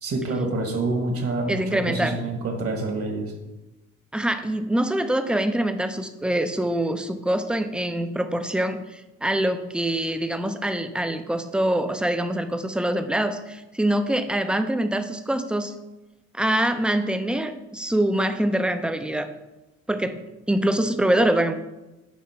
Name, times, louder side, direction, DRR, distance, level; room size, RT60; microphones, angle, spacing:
voice 1, 0.0-3.3, right 2 dB, 50° right, 3 dB, 1.4 m, -27 dB
voice 2, 1.5-2.2 4.1-15.7 16.3-19.3 19.9-20.2 20.5-21.5, right 1 dB, 5° right, 8 dB, 0.4 m, -24 dB
7.4 x 2.8 x 5.5 m, 1.0 s
cardioid pair, 90°, 30 cm